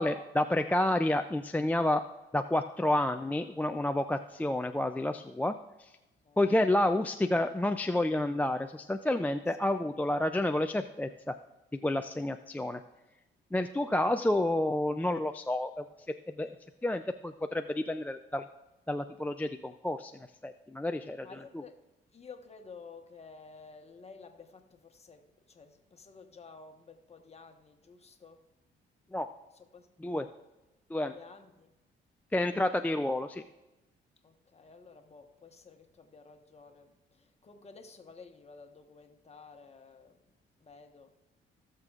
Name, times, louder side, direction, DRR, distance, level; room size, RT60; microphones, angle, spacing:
voice 1, 0.0-2.0 2.3-5.5 5.8-5.9 6.4-11.3 11.8-12.8 13.5-15.8 16.4-16.5 16.8-18.5 18.9-20.1 20.4-21.3 29.1-29.3 30.0-30.3 30.9-31.1 32.3-33.4, left 1 dB, 10° left, 0.3 m, -29 dB
voice 2, 21.2-21.8 22.1-28.4 29.5-29.9 31.1-31.7 32.9-33.1 34.2-40.2 40.6-41.1, left 4 dB, 30° left, 1.2 m, -52 dB
17.0 x 6.6 x 2.4 m
cardioid pair, 90°, 20 cm